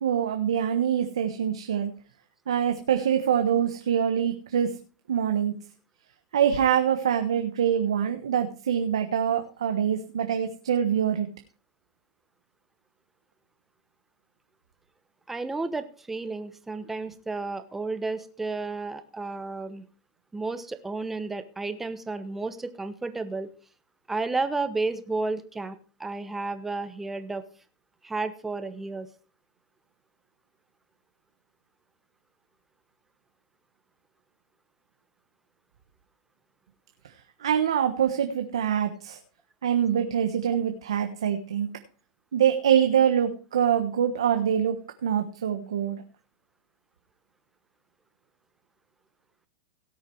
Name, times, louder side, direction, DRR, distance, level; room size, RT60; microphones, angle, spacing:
voice 1, 0.0-1.9 2.5-4.7 5.1-5.5 6.3-11.3 37.4-39.2 39.6-41.7 42.3-44.8 45.0-46.0, right 9 dB, 90° right, 6 dB, 1.2 m, -24 dB
voice 2, 15.3-19.9 20.3-23.5 24.1-27.4 28.0-29.1, right 3 dB, 10° right, 10 dB, 1.2 m, -32 dB
17.5 x 6.7 x 4.6 m, 0.37 s
hypercardioid pair, 130°, 3 cm